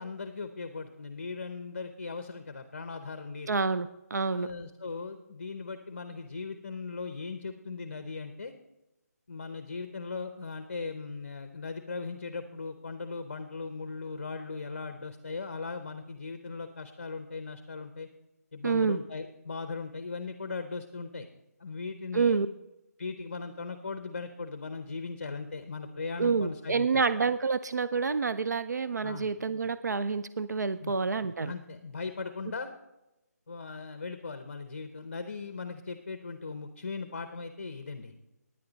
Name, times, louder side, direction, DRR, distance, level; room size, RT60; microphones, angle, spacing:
voice 1, 0.0-3.6 4.3-8.5 9.3-18.1 18.5-21.3 21.6-22.4 23.0-27.0 29.0-29.3 30.8-31.0 31.4-32.7 33.5-38.1, left 4 dB, 40° left, 9 dB, 0.7 m, -38 dB
voice 2, 3.5-4.5 18.6-19.0 22.1-22.5 26.2-31.5, right 5 dB, 90° right, 13 dB, 0.5 m, -28 dB
16.0 x 10.0 x 4.0 m, 0.96 s
hypercardioid pair, 175°, 9 cm